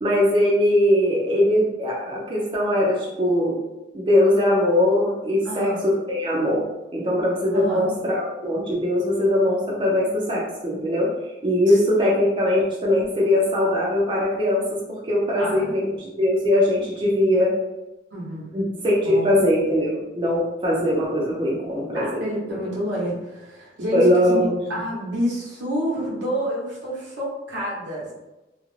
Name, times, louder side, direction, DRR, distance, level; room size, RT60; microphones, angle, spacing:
voice 1, 0.0-3.6 3.9-6.6 6.9-11.1 11.4-17.5 18.5-22.2 23.9-24.6, left 1 dB, 25° right, -5 dB, 0.4 m, -21 dB
voice 2, 5.4-5.8 7.5-7.9 11.7-11.8 15.4-15.7 18.1-18.5 19.0-19.3 21.9-28.1, equal, 80° right, -5 dB, 0.8 m, -29 dB
2.4 x 2.1 x 3.1 m, 1.0 s
head